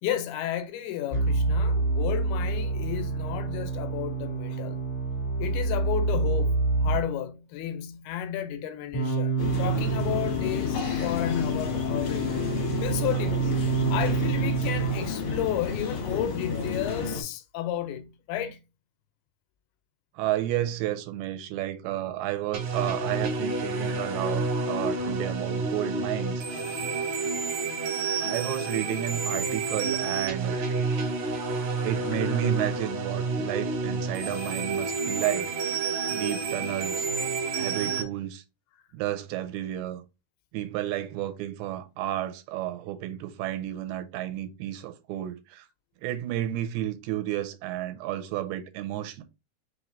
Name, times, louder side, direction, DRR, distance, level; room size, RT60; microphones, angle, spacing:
voice 1, 0.0-4.9 5.4-12.5 12.8-13.6 13.9-18.6 27.3-27.6 28.2-28.3, left 11 dB, 85° left, 2.5 m, -32 dB
sound 1, 1.1-7.0 8.9-15.0, right 3 dB, 50° left, 0.8 m, -27 dB
sound 2, 9.4-17.2, left 5 dB, 70° left, 1.3 m, -31 dB
voice 2, 20.2-26.5 28.2-30.6 31.8-35.5 36.1-37.1 37.5-38.4 38.9-40.0 40.5-45.7 46.0-49.2, right 13 dB, 85° right, 2.5 m, -31 dB
sound 3, 22.5-38.0, right 4 dB, 65° right, 2.5 m, -29 dB
5.6 x 3.1 x 2.5 m
omnidirectional pair, 4.4 m